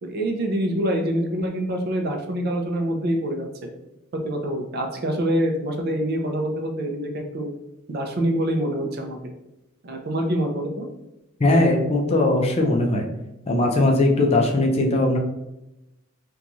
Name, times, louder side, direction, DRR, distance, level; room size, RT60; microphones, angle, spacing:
voice 1, 0.0-3.5 4.1-7.5 7.9-9.2 9.8-10.9, right 1 dB, 50° right, 3 dB, 0.4 m, -25 dB
voice 2, 11.4-13.1 13.5-15.2, left 2 dB, 30° left, 1 dB, 0.4 m, -19 dB
2.9 x 2.3 x 2.6 m, 0.91 s
head